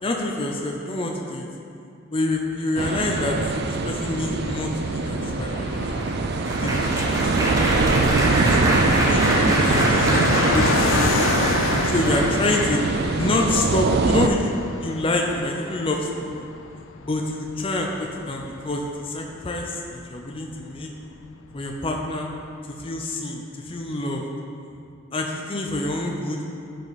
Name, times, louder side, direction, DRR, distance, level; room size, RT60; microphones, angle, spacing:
voice 1, 0.0-1.5 2.1-3.4 3.7-5.8 6.6-9.9 10.5-12.8 13.1-14.5 14.8-16.3 17.0-20.9 21.5-22.3 22.6-24.2 25.1-26.5, left 2 dB, 25° left, 1 dB, 0.6 m, -27 dB
sound 1, 2.8-14.3, right 3 dB, 55° right, 0.4 m, -23 dB
Fixed-wing aircraft airplane, 2.9-21.2 21.5-21.6 21.8-22.5, left 5 dB, 75° left, 0.4 m, -30 dB
Applause, 4.7-13.0 13.7-13.9 14.2-14.4, right 1 dB, 15° right, 0.9 m, -26 dB
12.0 x 5.1 x 4.1 m, 2.5 s
head